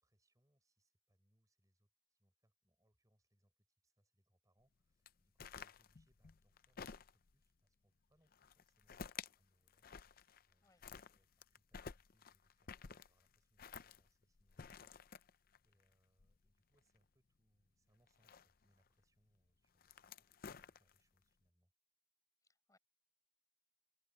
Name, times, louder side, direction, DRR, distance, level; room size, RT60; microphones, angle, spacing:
voice 1, 0.0-9.0 9.3-9.9 10.5-20.3 20.5-21.7, equal, 20° right, 6.2 m, -80 dB
sound 1, 5.1-7.4 8.3-9.4 9.7-10.5 10.8-17.0 18.1-18.9 19.6-21.2, left 6 dB, 55° left, 0.6 m, -53 dB
voice 2, 22.4-22.8, left 2 dB, 20° left, 7.4 m, -74 dB
head